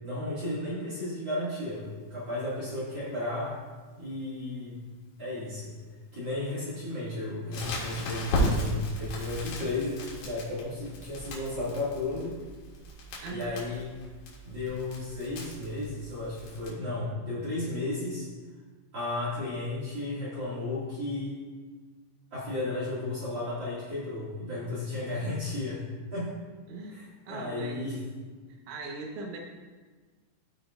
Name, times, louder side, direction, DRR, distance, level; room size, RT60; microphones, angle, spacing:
voice 1, 0.0-3.5 4.0-4.7 5.2-5.7 6.1-12.4 13.3-13.9 14.4-18.3 18.9-21.3 22.3-25.8 26.1-26.3 26.9-28.0, left 2 dB, 50° right, -9 dB, 1.4 m, -34 dB
Crackle, 7.5-16.7, equal, 70° left, 3.9 m, -35 dB
voice 2, 13.2-13.6 26.7-28.0 28.5-29.4, right 3 dB, 80° right, 1 dB, 3.5 m, -40 dB
15.5 x 5.4 x 2.4 m, 1.4 s
omnidirectional pair, 5.5 m